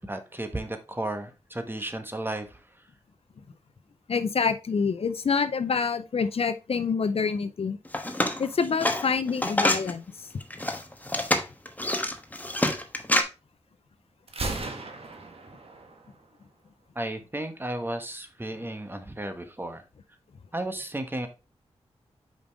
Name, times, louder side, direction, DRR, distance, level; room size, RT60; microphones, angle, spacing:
voice 1, 0.1-2.6 16.9-19.8 20.5-21.3, right 1 dB, 20° right, 1.2 m, -34 dB
voice 2, 4.1-7.8 8.4-10.0, left 5 dB, 60° left, 0.5 m, -26 dB
sound 1, 7.8-9.9 10.4-13.2, left 1 dB, 15° left, 1.1 m, -26 dB
Gunshot gunfire, 14.3-16.2, right 3 dB, 55° right, 1.4 m, -36 dB
5.2 x 5.2 x 3.5 m
cardioid pair, 50°, 11 cm